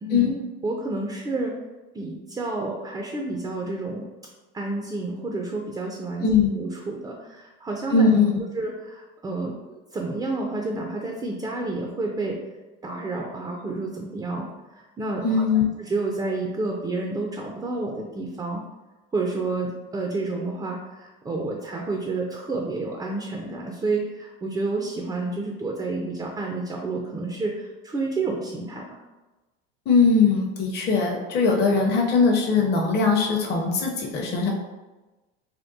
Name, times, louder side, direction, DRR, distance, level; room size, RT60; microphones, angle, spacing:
voice 1, 0.0-0.3 0.6-1.6 1.9-4.1 4.5-6.2 6.6-8.1 8.6-12.4 12.8-15.4 15.8-18.6 19.1-29.0, right 3 dB, 15° right, 1 dB, 0.3 m, -30 dB
voice 2, 7.9-8.3 15.2-15.7 29.9-34.5, left 4 dB, 35° left, 0 dB, 0.6 m, -20 dB
3.5 x 2.3 x 2.6 m, 1.1 s
hypercardioid pair, 85°, 30 cm